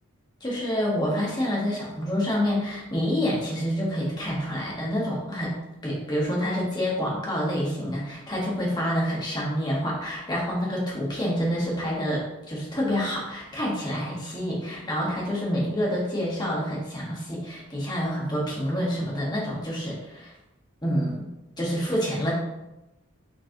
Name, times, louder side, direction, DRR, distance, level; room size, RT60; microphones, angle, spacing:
voice 1, 0.4-5.5 5.8-20.3 20.8-21.3 21.6-22.3, equal, 20° left, -4 dB, 1.1 m, -27 dB
6.1 x 3.2 x 2.6 m, 0.96 s
head